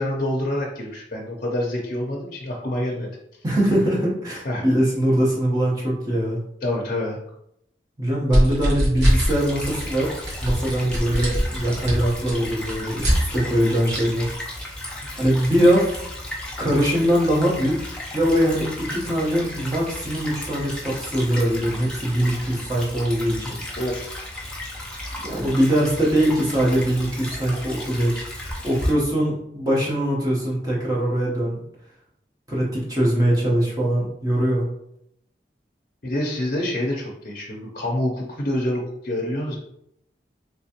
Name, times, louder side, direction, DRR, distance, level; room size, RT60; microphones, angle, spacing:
voice 1, 0.0-3.1 4.4-4.6 6.6-7.2 23.8-24.1 36.0-39.6, left 1 dB, 50° left, -1 dB, 0.6 m, -27 dB
voice 2, 3.4-6.4 8.0-10.1 10.4-14.3 15.2-16.0 16.6-17.9 18.1-23.5 25.2-28.3 28.6-31.6 32.5-34.6, equal, 20° right, -5 dB, 0.9 m, -22 dB
sound 1, 8.3-9.3 9.6-9.9 10.2-13.2 13.9-14.0, equal, 85° right, 1.4 m, -22 dB
Stream / Trickle dribble, 9.0-28.9, left 1 dB, 5° left, 0.6 m, -34 dB
3.4 x 2.9 x 2.8 m, 0.76 s
head